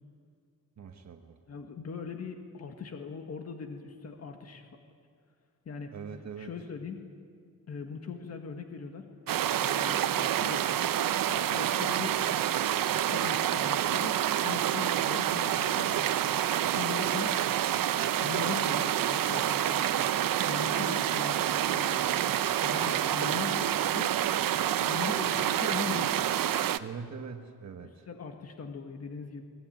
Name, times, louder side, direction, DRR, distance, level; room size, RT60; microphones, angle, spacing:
voice 1, 0.8-1.4 5.9-6.6 26.8-28.1, right 6 dB, 55° right, 4 dB, 1.4 m, -42 dB
voice 2, 1.5-4.7 5.7-5.9 6.4-7.1 7.7-9.1 9.6-10.6 11.3-12.2 12.9-14.2 14.4-16.3 16.6-17.4 18.2-20.1 20.4-22.0 22.6-24.2 24.8-26.4 28.1-29.4, left 6 dB, 50° left, 4 dB, 1.8 m, -40 dB
sound 1, 9.3-26.8, right 11 dB, 85° right, 0.8 m, -28 dB
23.5 x 20.5 x 9.2 m, 2.2 s
wide cardioid pair, 170°, 33 cm